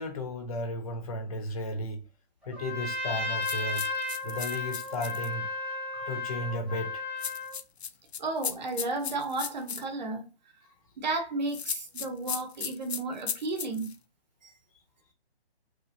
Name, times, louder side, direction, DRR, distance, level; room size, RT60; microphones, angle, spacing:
voice 1, 0.0-2.0 2.5-3.9 4.2-5.5 6.1-7.0, left 1 dB, 35° left, 0.7 m, -34 dB
Trumpet, 2.5-7.6, left 3 dB, ahead, 0.6 m, -34 dB
sound 1, 3.4-5.3 7.2-9.8 11.5-14.0, left 7 dB, 75° left, 0.5 m, -36 dB
voice 2, 8.2-10.3 11.0-13.9, right 3 dB, 45° right, 0.8 m, -33 dB
3.0 x 2.4 x 2.5 m
figure-of-eight pair, 140°, 32 cm